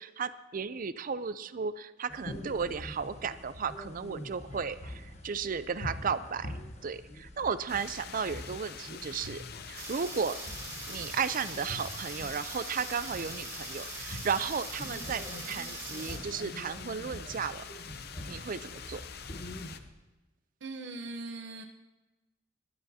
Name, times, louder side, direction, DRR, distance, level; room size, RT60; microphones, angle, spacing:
voice 1, 0.0-6.5 6.8-9.4 9.7-10.4 10.9-17.6 18.3-19.0, right 6 dB, 45° right, 13 dB, 0.5 m, -34 dB
sound 1, 2.1-19.9, left 1 dB, 35° left, 1.2 m, -45 dB
sound 2, 7.7-19.8, left 7 dB, 55° left, 0.7 m, -46 dB
sound 3, 9.7-16.2, right 3 dB, 15° right, 2.2 m, -42 dB
voice 2, 20.6-21.6, right 2 dB, 70° right, 3 dB, 0.8 m, -40 dB
20.0 x 11.0 x 2.8 m, 1.1 s
head